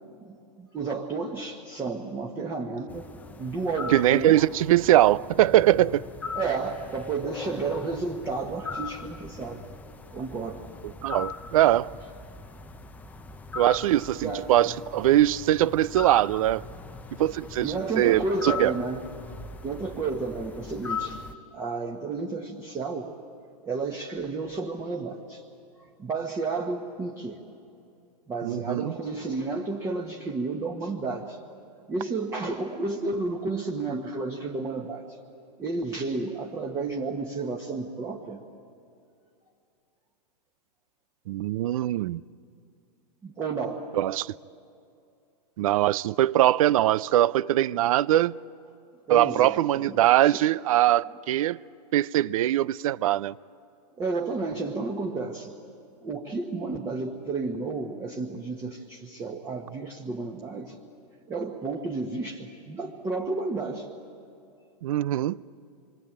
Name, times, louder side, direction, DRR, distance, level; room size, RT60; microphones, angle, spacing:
voice 1, 0.2-3.1 3.4-4.5 6.3-9.6 10.1-10.6 14.1-14.5 17.6-19.0 19.6-21.2 21.5-23.1 23.6-25.4 26.0-27.4 28.3-31.4 31.9-35.2 35.6-38.4 43.2-43.9 49.1-50.4 54.0-55.5 56.0-60.8 61.3-63.9, right 3 dB, 15° right, 1.4 m, -32 dB
sound 1, 2.9-21.3, left 5 dB, 10° left, 0.6 m, -40 dB
voice 2, 3.9-6.0 10.8-11.9 13.6-16.6 17.2-18.7 28.4-28.9 41.3-42.2 44.0-44.4 45.6-48.4 49.1-51.6 51.9-53.3 64.8-65.4, right 13 dB, 55° right, 0.5 m, -22 dB
27.0 x 23.5 x 8.8 m
hypercardioid pair, 150°, 20 cm